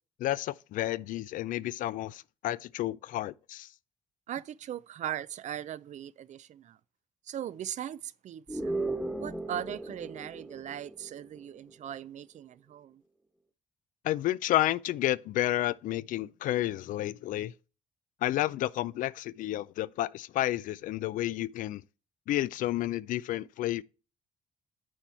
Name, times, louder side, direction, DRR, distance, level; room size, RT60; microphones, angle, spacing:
voice 1, 0.2-3.7 14.0-17.5 18.2-21.8 22.3-23.8, left 14 dB, 75° left, 0.4 m, -31 dB
voice 2, 4.3-6.8 7.3-8.8 9.2-13.0, right 10 dB, 60° right, 0.5 m, -39 dB
sound 1, 8.5-11.4, right 2 dB, 5° right, 1.2 m, -36 dB
9.1 x 4.6 x 4.3 m
supercardioid pair, 65°, 14 cm